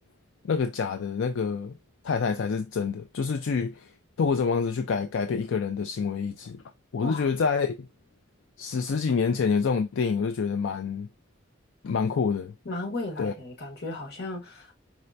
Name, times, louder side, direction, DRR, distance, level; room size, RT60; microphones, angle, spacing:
voice 1, 0.4-1.8 2.0-3.9 4.2-6.6 6.9-7.9 8.6-11.1 11.8-12.5 13.2-13.3, left 5 dB, 80° left, 0.4 m, -27 dB
voice 2, 12.6-14.7, left 2 dB, 60° left, 1.5 m, -35 dB
4.9 x 3.3 x 2.6 m
head